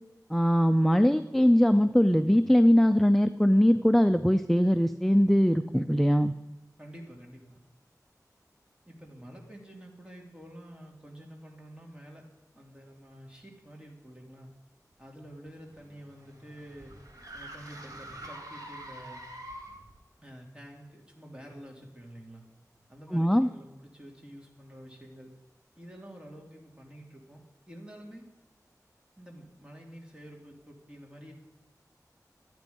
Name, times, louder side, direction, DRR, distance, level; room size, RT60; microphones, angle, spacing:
voice 1, 0.3-6.3 23.1-23.5, equal, 5° left, 10 dB, 0.5 m, -21 dB
voice 2, 6.8-7.6 8.8-12.3 12.5-14.5 15.0-16.9 17.3-19.3 20.2-22.4 22.9-25.3 25.8-28.3 29.2-31.3, equal, 15° right, 0 dB, 2.9 m, -48 dB
sound 1, 15.5-20.0, right 1 dB, 60° right, 2.5 m, -45 dB
13.0 x 9.2 x 5.3 m, 1.1 s
wide cardioid pair, 55°, 7 cm